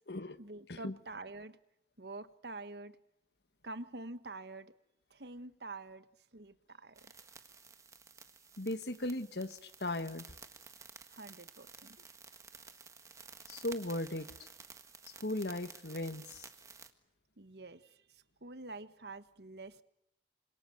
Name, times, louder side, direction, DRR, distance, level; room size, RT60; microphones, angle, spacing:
voice 1, 0.4-1.6 2.0-3.0 3.6-4.7 5.1-6.0 6.3-7.1 11.1-12.0 17.4-19.8, right 2 dB, 70° right, 12 dB, 1.4 m, -47 dB
sound 1, 7.0-16.9, right 5 dB, 15° right, 1.6 m, -54 dB
voice 2, 8.6-10.3 13.5-14.3 15.2-16.5, left 1 dB, 70° left, 11 dB, 1.6 m, -37 dB
28.0 x 26.5 x 8.0 m, 0.77 s
head